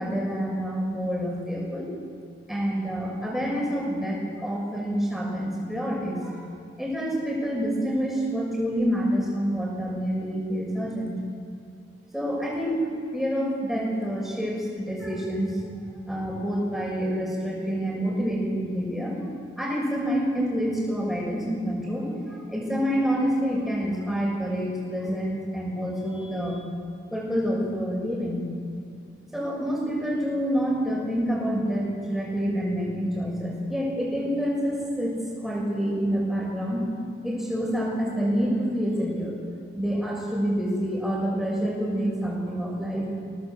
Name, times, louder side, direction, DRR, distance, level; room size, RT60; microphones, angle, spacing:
voice 1, 0.0-1.9 2.5-6.4 6.8-11.1 12.1-15.7 16.1-19.2 19.6-26.6 27.1-28.5 29.3-36.9 37.2-39.4 39.7-43.1, equal, ahead, -3 dB, 6.2 m, -27 dB
22.0 x 18.0 x 7.9 m, 2.4 s
head